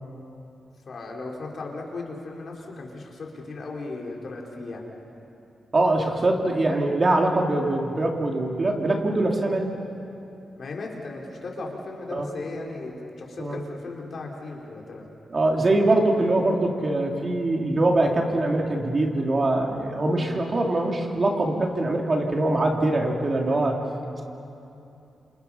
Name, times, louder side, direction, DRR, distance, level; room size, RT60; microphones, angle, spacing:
voice 1, 0.9-4.9 10.6-15.1 20.1-20.4, left 3 dB, 60° left, -1 dB, 4.5 m, -36 dB
voice 2, 5.7-9.7 12.1-12.3 13.4-13.6 15.3-23.8, right 2 dB, 40° right, 1 dB, 3.1 m, -23 dB
29.5 x 27.0 x 5.8 m, 2.8 s
cardioid pair, 80°, 0 cm